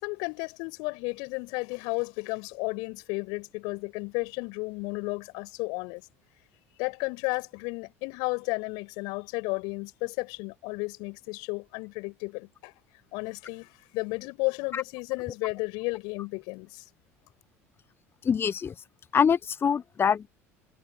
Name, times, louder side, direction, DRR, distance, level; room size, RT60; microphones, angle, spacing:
voice 1, 0.0-6.0 6.8-12.7 13.1-16.9, left 29 dB, 60° left, 5.2 m, -33 dB
voice 2, 18.3-18.7 19.1-20.3, left 7 dB, 30° left, 0.9 m, -24 dB
figure-of-eight pair, 65°, 8 cm